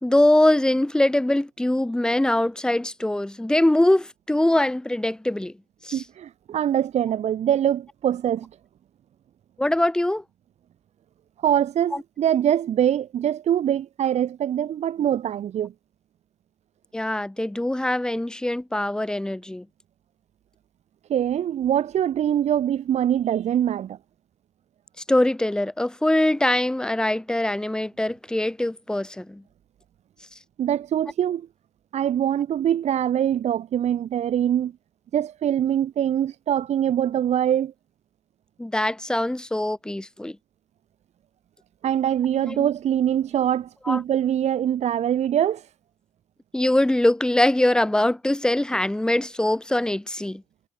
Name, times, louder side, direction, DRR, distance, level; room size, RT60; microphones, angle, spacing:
voice 1, 0.0-5.5 5.8-6.0 9.6-10.2 11.9-12.0 16.9-19.7 25.1-29.4 38.6-40.4 42.4-42.7 43.8-44.0 46.5-50.4, left 1 dB, 5° left, 0.8 m, -22 dB
voice 2, 5.9-8.5 11.4-15.7 21.1-24.0 30.6-31.5 31.9-34.7 35.1-37.7 41.8-45.6, right 10 dB, 55° right, 0.6 m, -23 dB
cardioid pair, 130°, 13 cm